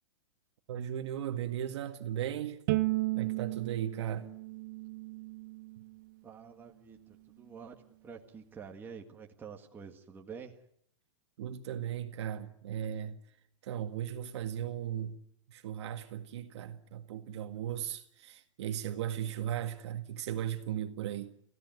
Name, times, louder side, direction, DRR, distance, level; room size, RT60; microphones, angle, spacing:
voice 1, 0.7-2.6 3.1-4.3 11.4-13.2 13.6-15.2 15.5-21.3, right 10 dB, 60° right, 1.8 m, -37 dB
Bowed string instrument, 2.7-5.9, right 20 dB, 40° right, 0.9 m, -34 dB
voice 2, 6.2-7.7 8.0-10.6, right 6 dB, 10° right, 1.8 m, -48 dB
28.0 x 16.0 x 9.4 m
hypercardioid pair, 155°, 16 cm